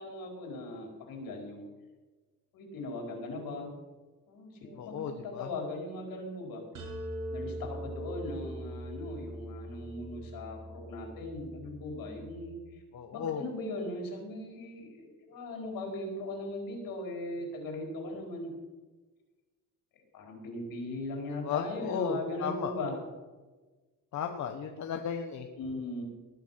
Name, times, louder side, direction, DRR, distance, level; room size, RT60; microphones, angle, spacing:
voice 1, 0.0-1.7 2.5-3.7 4.3-6.6 7.3-12.8 13.1-18.5 20.1-22.9 25.6-26.0, left 2 dB, 75° left, 1 dB, 4.8 m, -39 dB
voice 2, 4.7-5.5 12.9-13.4 21.4-22.7 24.1-25.5, left 7 dB, 55° left, 5 dB, 1.2 m, -35 dB
sound 1, 6.7-12.5, right 1 dB, 55° right, 6.2 m, -42 dB
19.5 x 9.7 x 5.9 m, 1.3 s
cardioid pair, 150°, 35 cm